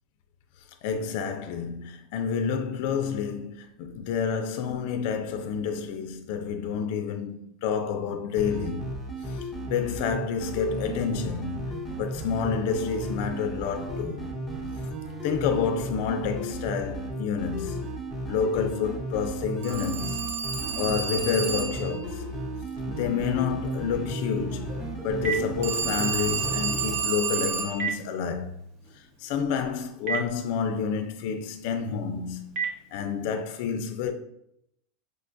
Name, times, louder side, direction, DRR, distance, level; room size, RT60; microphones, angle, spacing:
voice 1, 0.8-8.9 9.2-14.3 15.2-18.0 18.3-20.2 20.8-22.2 22.9-28.5 28.9-34.1, left 6 dB, 60° left, 0.4 m, -29 dB
sound 1, 8.4-27.0, right 1 dB, 5° right, 0.6 m, -34 dB
Telephone, 19.6-21.9 25.6-27.8, right 6 dB, 85° right, 0.5 m, -30 dB
Telephone 2, 24.5-33.4, right 6 dB, 45° right, 0.7 m, -38 dB
4.8 x 2.2 x 2.5 m
supercardioid pair, 155°, 0 cm